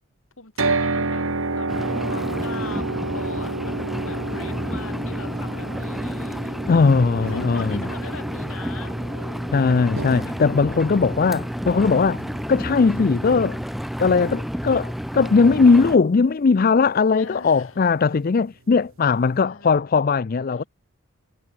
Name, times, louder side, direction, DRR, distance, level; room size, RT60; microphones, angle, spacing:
voice 1, 0.4-6.6 7.2-9.5 17.2-17.8 19.4-19.9 20.5-20.7, left 4 dB, 70° left, 5.7 m, -41 dB
sound 1, 0.6-14.7, right 3 dB, 70° right, 2.1 m, -31 dB
Engine, 1.7-16.0, equal, ahead, 2.3 m, -30 dB
voice 2, 6.7-7.8 9.5-12.2 12.5-13.6 14.0-20.6, left 4 dB, 40° left, 0.4 m, -19 dB
sound 2, 7.2-8.1 8.9-9.4 10.0-10.8 11.3-11.9 12.2-13.0 13.3-13.7 14.1-14.7, right 1 dB, 90° right, 5.7 m, -41 dB
head